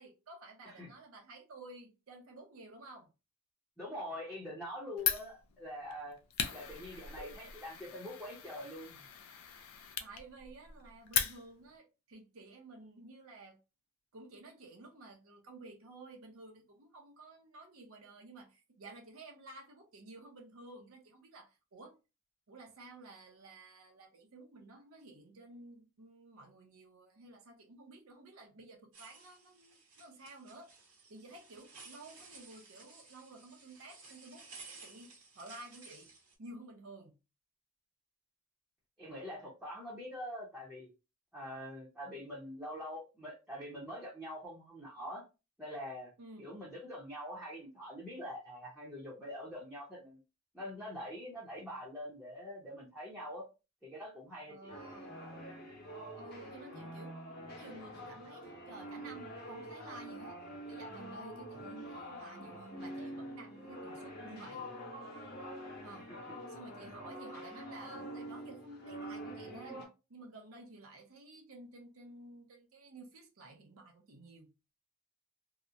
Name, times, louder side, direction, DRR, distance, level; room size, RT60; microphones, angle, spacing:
voice 1, 0.0-3.1 6.9-7.5 10.0-13.6 14.1-22.0 22.5-30.7 31.1-34.5 34.8-36.1 36.4-37.2 46.2-46.5 54.5-55.2 56.2-57.2 57.5-60.4 60.7-64.7 65.8-66.1 66.5-74.5, right 2 dB, 70° right, 0.6 m, -53 dB
voice 2, 3.8-6.2 6.5-9.0 39.0-40.9 41.3-45.2 45.6-46.1 46.4-50.2 50.5-53.4 53.8-54.7 66.1-66.2, equal, ahead, 0.7 m, -44 dB
Fire, 5.0-11.8, left 9 dB, 75° left, 0.4 m, -39 dB
sound 1, 28.9-36.3, right 4 dB, 85° right, 1.1 m, -55 dB
sound 2, 54.7-69.9, equal, 45° left, 0.7 m, -46 dB
2.8 x 2.1 x 2.4 m
head